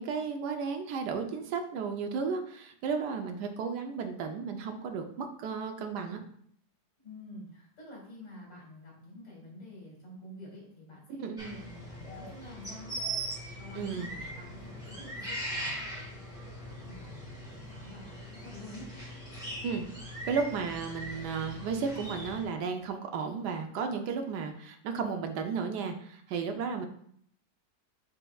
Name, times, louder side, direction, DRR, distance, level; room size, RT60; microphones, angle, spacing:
voice 1, 0.0-6.2 11.2-11.6 13.7-14.1 19.6-19.8 20.2-26.9, right 5 dB, 75° right, 5 dB, 1.1 m, -34 dB
voice 2, 7.0-12.9 13.6-16.2 16.6-18.9, left 1 dB, 85° left, -5 dB, 2.8 m, -48 dB
sound 1, 11.4-22.4, right 1 dB, ahead, 1.2 m, -40 dB
6.8 x 3.3 x 2.3 m, 0.64 s
omnidirectional pair, 2.0 m